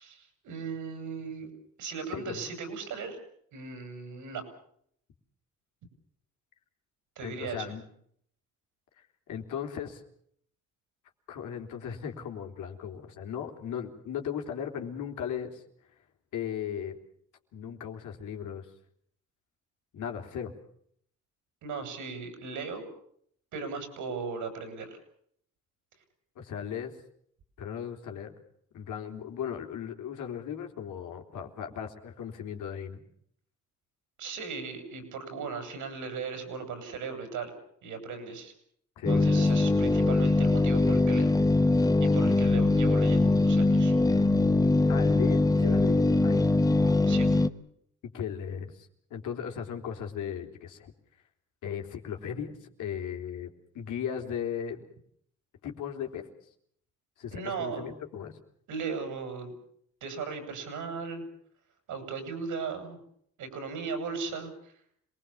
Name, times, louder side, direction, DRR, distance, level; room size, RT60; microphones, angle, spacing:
voice 1, 0.0-1.5 1.8-3.2 3.5-4.4 7.2-7.7 21.6-22.9 23.5-25.0 34.2-37.5 37.8-38.5 39.1-41.3 42.0-43.9 47.1-47.3 57.3-57.8 58.7-59.5 60.0-61.2 61.9-63.0 63.4-64.7, right 5 dB, 80° right, 7 dB, 7.3 m, -37 dB
voice 2, 2.1-2.5 7.2-7.8 9.3-10.0 11.3-15.6 16.3-17.0 17.5-18.7 19.9-20.5 26.4-26.9 27.6-28.3 28.7-33.0 39.0-39.5 44.9-46.6 48.0-50.9 51.6-54.8 55.6-56.3 57.2-58.4, left 8 dB, 80° left, 3 dB, 3.6 m, -37 dB
sound 1, 39.0-47.5, left 2 dB, 10° left, 1.2 m, -22 dB
27.0 x 20.5 x 7.2 m, 0.66 s
cardioid pair, 90°, 30 cm